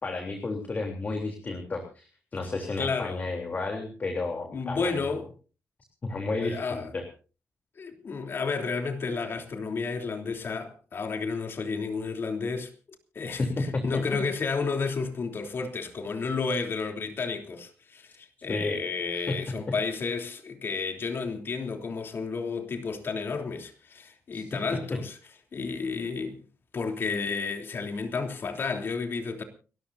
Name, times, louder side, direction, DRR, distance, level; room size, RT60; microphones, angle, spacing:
voice 1, 0.0-5.0 6.0-7.1 13.4-13.8 14.1-14.2 18.5-19.4 24.3-24.6, left 3 dB, 35° left, 3.4 m, -32 dB
voice 2, 2.8-3.2 4.5-5.3 6.4-6.9 7.8-12.7 13.1-25.2 25.5-26.4 26.7-29.4, left 4 dB, 50° left, 3.3 m, -32 dB
30.0 x 13.5 x 2.7 m
cardioid pair, 105°, 5 cm